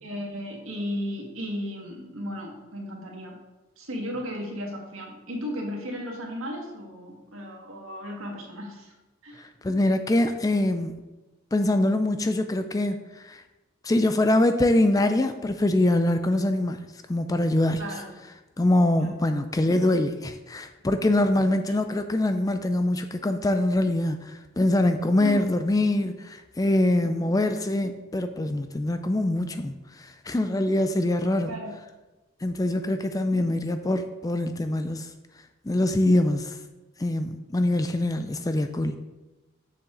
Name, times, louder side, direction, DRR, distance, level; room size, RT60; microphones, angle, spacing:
voice 1, 0.0-3.4 3.8-8.9 9.2-9.4 17.8-18.1 19.0-19.1 25.2-25.4 31.5-31.7, equal, 70° right, 0 dB, 1.8 m, -35 dB
voice 2, 9.4-11.0 11.5-13.4 13.8-16.8 17.1-17.8 18.6-31.5 32.4-35.1 35.7-36.6 37.0-38.9, left 1 dB, 15° left, 8 dB, 0.3 m, -24 dB
7.1 x 6.9 x 3.8 m, 1.1 s
head